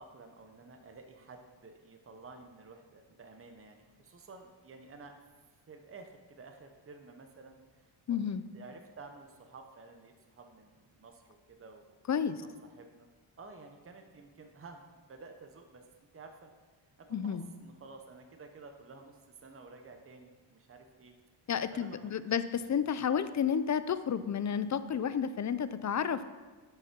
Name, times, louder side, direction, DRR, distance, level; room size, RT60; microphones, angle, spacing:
voice 1, 0.0-5.1 5.7-8.2 8.5-11.9 12.3-13.1 13.4-15.8 16.1-16.5 17.0-21.1 21.7-22.4, right 3 dB, 25° right, 4 dB, 0.8 m, -52 dB
voice 2, 8.1-8.4 12.1-12.4 17.1-17.5 21.5-26.2, left 7 dB, 35° left, 13 dB, 0.4 m, -31 dB
7.8 x 5.6 x 6.0 m, 1.3 s
cardioid pair, 85°, 49 cm